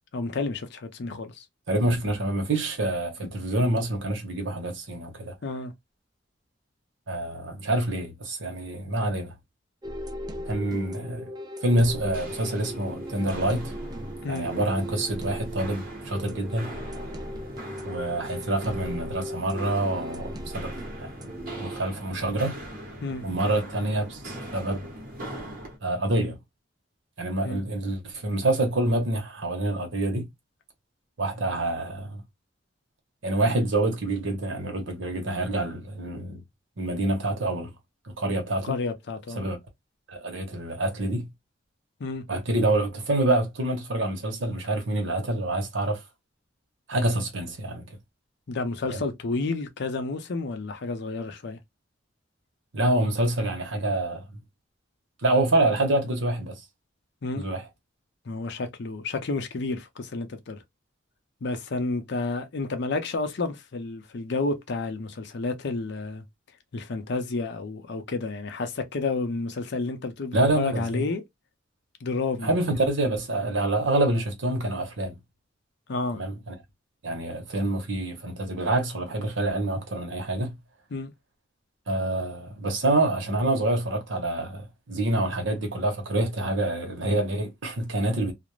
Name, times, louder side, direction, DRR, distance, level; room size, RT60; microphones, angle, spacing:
voice 1, 0.1-1.4 5.4-5.7 14.2-14.5 23.0-23.2 27.4-27.6 38.6-39.4 42.0-42.2 48.5-51.6 57.2-57.5 58.3-60.6 61.4-66.2 66.7-71.2 72.0-72.5 75.9-76.2 80.9-81.1, left 3 dB, 65° left, 0.6 m, -30 dB
voice 2, 1.7-5.3 7.1-9.3 10.5-11.2 11.6-13.7 14.3-16.7 17.8-20.7 21.2-22.5 23.2-24.8 25.8-26.4 27.2-30.3 31.2-32.2 33.2-36.4 36.8-37.7 38.0-38.8 39.4-39.6 40.1-41.3 42.3-46.0 46.9-47.8 48.9-49.0 52.7-54.4 55.2-56.6 57.3-57.6 70.3-71.0 72.4-75.2 76.1-76.5 77.0-80.5 81.9-88.3, right 1 dB, 75° right, 1.0 m, -27 dB
sound 1, 9.8-21.8, equal, 20° right, 0.4 m, -37 dB
Walk footsteps, 12.0-25.8, equal, 50° right, 1.0 m, -41 dB
2.4 x 2.0 x 3.0 m
head